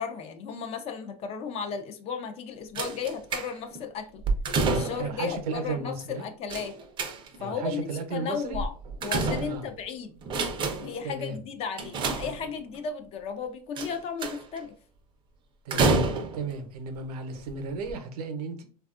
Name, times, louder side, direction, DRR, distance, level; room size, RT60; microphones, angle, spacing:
voice 1, 0.0-4.2 4.7-6.8 7.4-8.7 9.0-10.1 10.8-14.7, left 6 dB, 30° left, 0.4 m, -35 dB
sound 1, 2.8-3.8 4.2-5.2 6.5-7.5 8.5-9.8 10.2-11.0 11.8-12.8 13.8-14.6 15.7-16.5 17.4-17.5 17.8-17.9, right 3 dB, 25° right, 0.5 m, -28 dB
voice 2, 4.9-6.3 7.4-8.6 9.4-9.7 11.0-11.4 15.6-16.0 16.3-18.6, right 4 dB, 80° right, 0.7 m, -34 dB
3.3 x 2.3 x 2.4 m
supercardioid pair, 130°, 20 cm